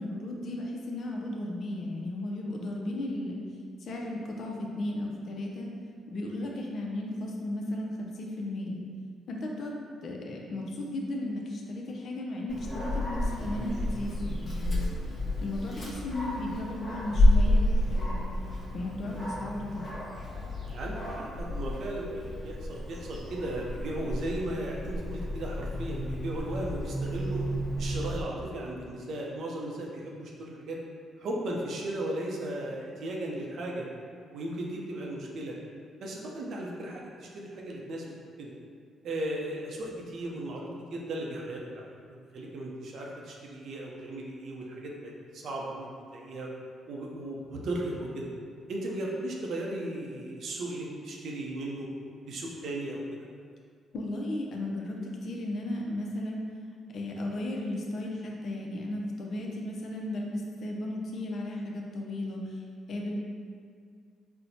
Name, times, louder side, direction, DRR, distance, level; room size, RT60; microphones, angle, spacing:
voice 1, 0.0-3.3 3.8-5.7 6.1-8.8 9.3-9.7 10.0-15.0 15.4-18.3 18.7-19.8 53.9-56.4 56.9-62.6 62.9-63.1, left 1 dB, 60° left, -1 dB, 0.5 m, -35 dB
Dog, 12.5-28.2, left 1 dB, 35° left, 0.8 m, -30 dB
voice 2, 20.7-27.4 27.8-30.8 31.2-33.9 34.3-35.5 36.0-38.5 39.0-46.5 46.9-48.3 48.7-51.9 52.2-53.3, right 1 dB, 65° right, -2 dB, 0.5 m, -36 dB
4.2 x 2.1 x 2.7 m, 2.1 s
cardioid pair, 90°, 0 cm